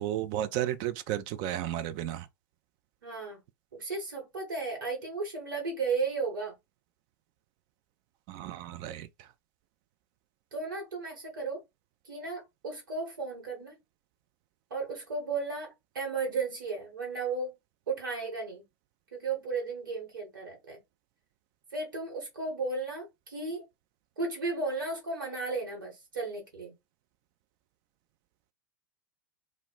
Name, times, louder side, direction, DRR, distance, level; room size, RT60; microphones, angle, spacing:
voice 1, 0.0-2.3 8.3-9.3, right 12 dB, 40° right, 0.3 m, -33 dB
voice 2, 3.0-3.4 3.7-6.5 10.5-11.6 12.0-13.8 14.7-17.5 17.9-18.6 19.1-20.8 21.7-23.6 24.2-26.7, right 4 dB, 65° right, 1.2 m, -34 dB
2.1 x 2.0 x 3.7 m
figure-of-eight pair, 90°, 11 cm